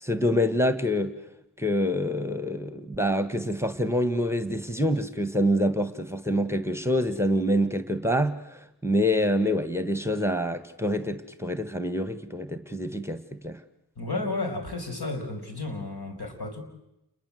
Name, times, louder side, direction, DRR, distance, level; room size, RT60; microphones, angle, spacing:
voice 1, 0.0-1.1 1.6-13.6, equal, 5° right, 11 dB, 1.5 m, -26 dB
voice 2, 14.0-16.6, left 2 dB, 65° left, 4 dB, 5.8 m, -32 dB
29.0 x 21.5 x 7.8 m, 0.87 s
cardioid pair, 50°, 41 cm